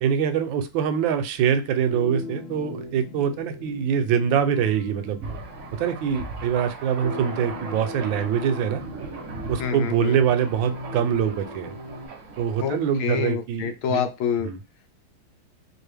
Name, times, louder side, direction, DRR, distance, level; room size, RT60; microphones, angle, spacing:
voice 1, 0.0-5.2 5.7-8.8 9.5-11.7 12.4-14.0 14.4-14.6, right 8 dB, 75° right, 9 dB, 1.2 m, -24 dB
sound 1, 1.9-12.1, left 2 dB, 70° left, 2.0 m, -39 dB
Thunder, 5.2-13.3, right 4 dB, 60° right, 0.8 m, -39 dB
voice 2, 9.6-10.2 12.6-14.5, left 7 dB, 85° left, 7 dB, 1.6 m, -27 dB
4.4 x 2.5 x 3.3 m, 0.27 s
omnidirectional pair, 2.2 m